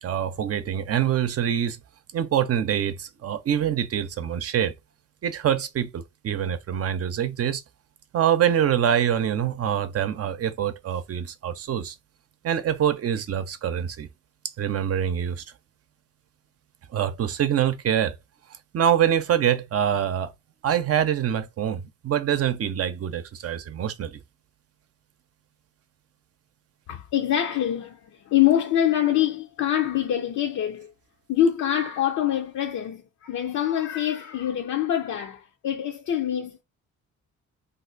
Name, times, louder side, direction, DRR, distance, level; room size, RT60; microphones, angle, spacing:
voice 1, 0.0-1.8 2.1-4.7 5.2-7.6 8.1-11.9 12.4-14.1 14.6-15.4 16.9-18.2 18.7-20.3 20.6-24.2, right 9 dB, 50° right, 0.7 m, -25 dB
voice 2, 26.9-30.9 31.3-36.6, left 11 dB, 65° left, 0.7 m, -25 dB
2.6 x 2.5 x 3.8 m
cardioid pair, 90°, 30 cm